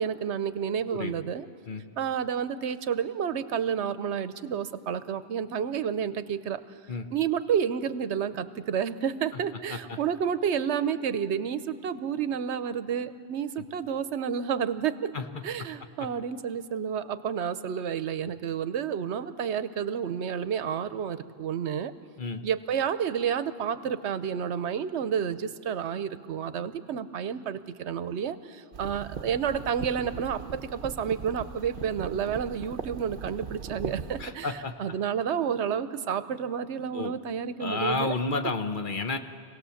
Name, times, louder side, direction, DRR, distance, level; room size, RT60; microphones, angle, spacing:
voice 1, 0.0-1.5 2.0-6.6 7.1-15.1 15.4-21.9 22.4-38.1, right 7 dB, 75° right, 13 dB, 1.0 m, -30 dB
sound 1, 28.7-34.3, right 6 dB, 50° right, 0.8 m, -39 dB
voice 2, 34.2-34.7 36.9-37.1 37.6-39.2, left 3 dB, 50° left, 7 dB, 1.0 m, -30 dB
26.0 x 18.0 x 7.1 m, 2.3 s
omnidirectional pair, 1.2 m